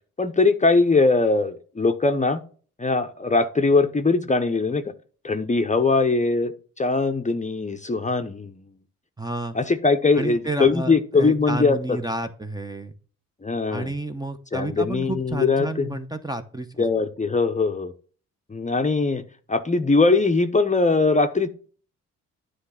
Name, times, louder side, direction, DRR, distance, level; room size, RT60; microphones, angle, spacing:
voice 1, 0.2-2.4 2.8-4.8 5.2-6.5 6.8-8.7 9.5-12.0 13.4-13.9 14.5-15.9 16.8-17.9 18.5-19.2 19.5-21.5, left 3 dB, 20° left, 7 dB, 0.7 m, -21 dB
voice 2, 9.2-9.6 10.2-12.9 13.7-16.8, right 2 dB, 10° right, 8 dB, 0.8 m, -30 dB
9.5 x 3.3 x 5.7 m, 0.42 s
supercardioid pair, 50°, 36 cm